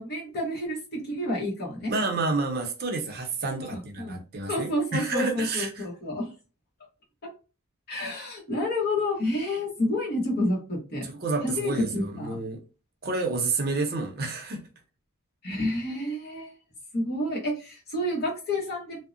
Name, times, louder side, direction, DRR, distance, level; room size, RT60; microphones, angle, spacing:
voice 1, 0.0-1.9 3.6-6.3 7.9-11.1 11.4-12.4 15.4-16.5 16.9-19.0, left 1 dB, 50° left, 1.0 m, -29 dB
voice 2, 1.9-5.8 11.0-12.6 13.0-14.6, right 3 dB, 45° right, 0.6 m, -29 dB
2.7 x 2.0 x 2.4 m
head